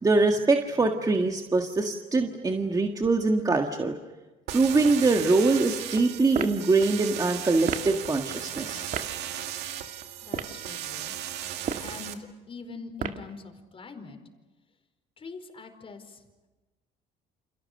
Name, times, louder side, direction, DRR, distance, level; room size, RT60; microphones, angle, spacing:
voice 1, 0.0-4.0 4.5-8.9, right 3 dB, 20° right, 3 dB, 1.8 m, -23 dB
sound 1, 4.5-12.1, right 11 dB, 90° right, 2.3 m, -36 dB
sound 2, 6.3-6.6 7.6-7.9 8.9-9.1 10.2-10.6 11.5-11.9 13.0-13.3, right 7 dB, 50° right, 1.9 m, -31 dB
voice 2, 10.2-11.1 11.8-14.2 15.2-16.2, left 4 dB, 35° left, 7 dB, 4.6 m, -43 dB
29.5 x 27.5 x 6.8 m, 1.1 s
cardioid pair, 110°, 17 cm